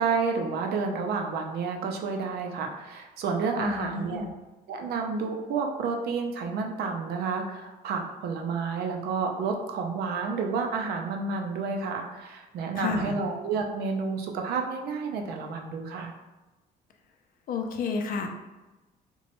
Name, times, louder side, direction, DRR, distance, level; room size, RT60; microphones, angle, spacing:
voice 1, 0.0-4.3 4.7-16.1, right 4 dB, 70° right, 3 dB, 0.5 m, -30 dB
voice 2, 3.6-4.3 12.7-13.2 17.5-18.3, left 4 dB, 55° left, 4 dB, 0.4 m, -31 dB
2.9 x 2.2 x 2.9 m, 1.1 s
cardioid pair, 110°, 17 cm